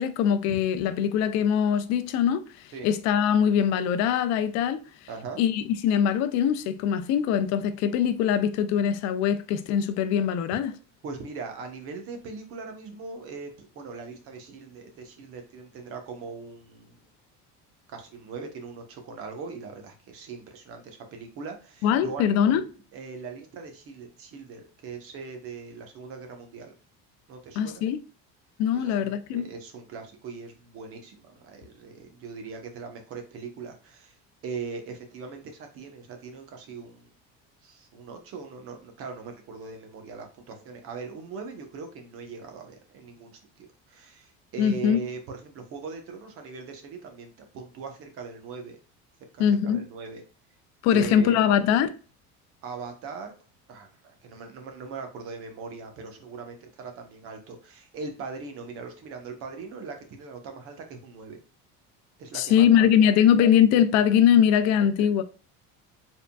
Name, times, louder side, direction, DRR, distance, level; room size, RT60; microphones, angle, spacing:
voice 1, 0.0-4.8 5.4-10.7 21.8-22.6 27.6-28.0 28.6-29.4 44.6-45.0 49.4-49.8 50.8-51.9 62.3-65.2, left 9 dB, 60° left, 0.5 m, -22 dB
voice 2, 5.1-5.4 11.0-17.0 17.9-22.3 22.9-26.7 27.3-27.8 28.7-34.2 34.4-37.1 37.6-48.8 49.3-50.2 50.9-51.4 52.6-53.3 53.7-61.4 62.2-63.1 64.8-65.1, right 4 dB, 45° right, 1.0 m, -40 dB
4.6 x 3.7 x 2.3 m
cardioid pair, 170°, 31 cm